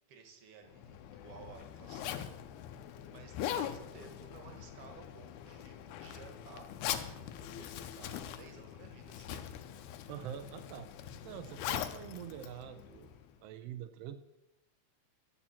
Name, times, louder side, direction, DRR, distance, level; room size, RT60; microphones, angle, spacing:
voice 1, 0.1-2.3 2.6-2.7 3.1-9.5, right 5 dB, 55° right, 4 dB, 1.9 m, -55 dB
Zipper (clothing), 0.7-13.3, left 10 dB, 85° left, 2.0 m, -42 dB
voice 2, 10.1-10.9 11.2-13.1 13.4-14.2, right 10 dB, 85° right, 10 dB, 1.4 m, -45 dB
11.0 x 4.3 x 7.4 m, 0.92 s
omnidirectional pair, 3.4 m